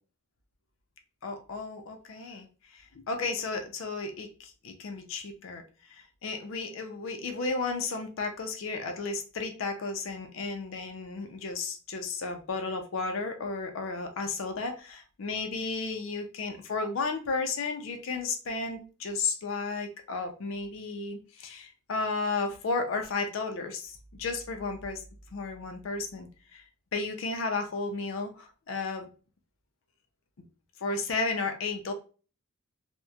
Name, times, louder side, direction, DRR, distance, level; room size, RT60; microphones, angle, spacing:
voice 1, 1.2-2.5 2.7-5.6 5.9-25.0 25.3-26.6 26.9-29.1 30.8-31.9, left 3 dB, 65° left, 6 dB, 0.4 m, -33 dB
2.9 x 2.1 x 2.2 m, 0.35 s
head